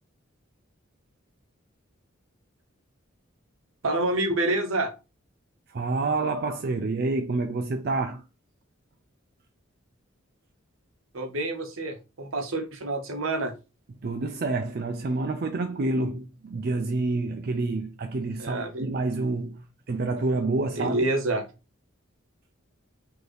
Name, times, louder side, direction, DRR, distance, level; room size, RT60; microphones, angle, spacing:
voice 1, 3.8-4.9 11.1-13.5 18.4-18.9 20.8-21.5, right 2 dB, 75° right, 0.9 m, -27 dB
voice 2, 5.7-8.2 14.0-21.0, right 3 dB, 50° right, 0.4 m, -28 dB
3.9 x 2.8 x 3.2 m
head